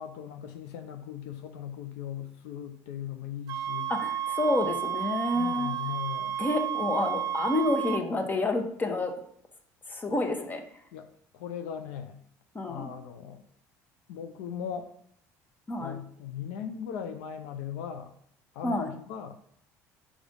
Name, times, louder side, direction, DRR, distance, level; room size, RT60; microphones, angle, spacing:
voice 1, 0.0-3.9 5.3-6.4 10.9-11.1 11.3-12.2 12.7-13.4 14.1-14.9 15.8-18.1 18.5-19.4, left 8 dB, 85° left, 7 dB, 0.6 m, -38 dB
sound 1, 3.5-8.0, right 10 dB, 60° right, 0.6 m, -32 dB
voice 2, 3.9-5.7 6.4-9.1 9.9-10.6 12.5-12.9 15.7-15.9 18.6-18.9, left 2 dB, 25° left, 5 dB, 1.2 m, -29 dB
5.1 x 5.0 x 5.3 m, 0.66 s
supercardioid pair, 90°, 7 cm